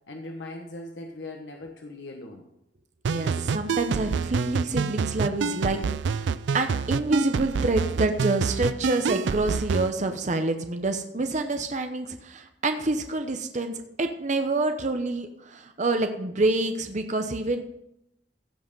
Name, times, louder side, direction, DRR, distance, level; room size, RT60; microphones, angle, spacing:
voice 1, 0.1-2.4, left 2 dB, 85° left, 2 dB, 1.1 m, -39 dB
sound 1, 3.0-9.9, right 5 dB, 75° right, 0.4 m, -27 dB
voice 2, 3.1-5.8 6.1-17.6, right 2 dB, 40° right, 7 dB, 0.8 m, -27 dB
15.5 x 5.6 x 5.3 m, 0.82 s
head